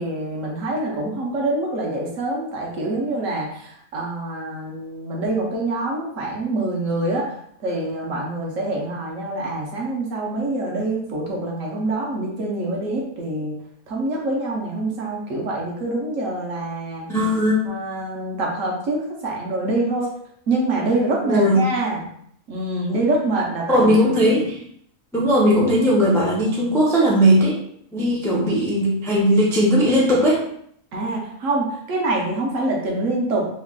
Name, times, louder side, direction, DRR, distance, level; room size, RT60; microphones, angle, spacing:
voice 1, 0.0-7.3 7.6-13.5 13.9-17.1 17.7-20.1 20.5-22.0 22.5-23.9 30.9-33.5, right 2 dB, 65° right, -2 dB, 1.1 m, -25 dB
voice 2, 17.1-17.7 21.2-21.6 23.7-24.6 25.1-27.6 27.9-30.4, equal, 5° left, -5 dB, 0.3 m, -18 dB
3.1 x 2.3 x 3.6 m, 0.68 s
omnidirectional pair, 1.5 m